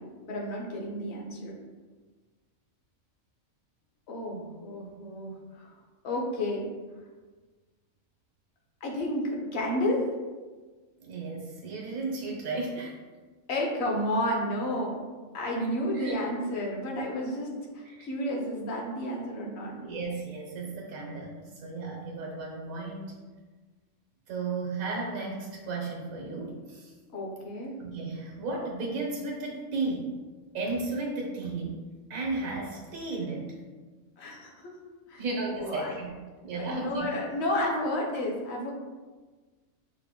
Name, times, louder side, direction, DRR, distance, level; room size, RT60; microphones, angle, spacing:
voice 1, 0.0-1.6 4.1-5.7 6.0-6.7 8.8-10.1 13.5-15.0 15.3-19.8 27.1-27.8 34.2-34.7 35.1-35.2 35.5-36.0 36.5-38.7, left 1 dB, 55° left, -1 dB, 1.0 m, -31 dB
voice 2, 11.0-12.9 15.9-16.2 17.9-18.1 19.8-23.2 24.3-26.9 27.8-30.1 30.5-31.8 32.1-33.6 35.2-36.1 36.4-37.1, right 3 dB, 90° right, -1 dB, 1.3 m, -34 dB
5.6 x 2.1 x 3.6 m, 1.4 s
omnidirectional pair, 1.4 m